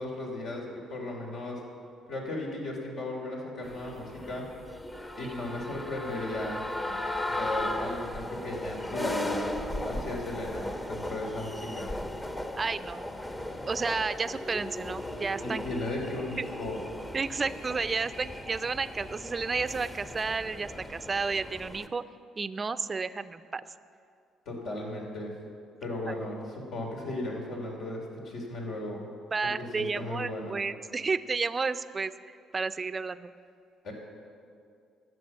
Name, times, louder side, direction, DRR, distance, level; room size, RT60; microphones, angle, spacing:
voice 1, 0.0-1.6 2.1-4.5 5.2-6.6 7.3-9.5 9.8-11.9 15.4-16.8 24.4-25.3 25.8-29.0 29.4-30.6 33.8-33.9, left 2 dB, 70° left, -1 dB, 3.0 m, -36 dB
sound 1, 3.6-21.9, left 1 dB, 20° left, 1.0 m, -37 dB
voice 2, 12.6-13.0 13.7-15.6 16.4-16.5 17.1-22.0 22.4-23.6 29.3-33.3, right 4 dB, 35° right, 13 dB, 0.5 m, -32 dB
12.5 x 6.8 x 8.3 m, 2.4 s
supercardioid pair, 70°, 0 cm